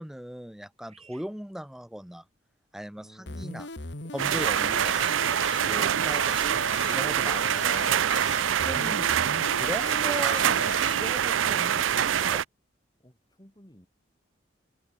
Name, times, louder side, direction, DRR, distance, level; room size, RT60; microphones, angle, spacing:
voice 1, 0.0-2.2 2.7-3.7 4.1-5.2 5.7-6.6 6.9-8.0 8.6-9.1 9.4-12.4, equal, ahead, 0.4 m, -39 dB
Bird vocalization bird call bird song, 0.9-2.4 3.0-3.5 4.2-5.1 5.4-8.9 9.2-9.3 9.4-9.8 10.2-12.1, right 5 dB, 30° right, 5.8 m, -61 dB
voice 2, 3.0-3.5 6.2-6.7 7.4-7.8 13.0-13.9, equal, 20° left, 3.7 m, -55 dB
sound 1, 3.3-11.1, left 3 dB, 60° left, 2.2 m, -38 dB
sound 2, 4.2-12.4, right 9 dB, 85° right, 0.5 m, -25 dB
open air
head